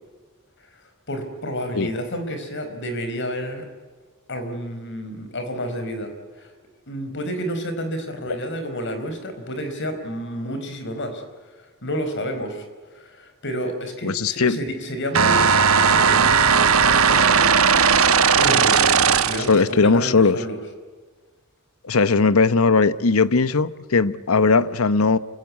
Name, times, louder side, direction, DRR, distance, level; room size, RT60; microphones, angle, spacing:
voice 1, 1.1-3.7 4.3-6.5 6.9-11.2 11.6-12.7 12.9-17.5 17.9-20.6, equal, 60° left, 4.6 m, -30 dB
voice 2, 14.0-14.6 19.5-20.4 21.8-25.2, left 4 dB, 75° left, 0.9 m, -18 dB
sound 1, 15.1-19.6, right 6 dB, 75° right, 1.1 m, -17 dB
28.0 x 17.0 x 9.7 m
head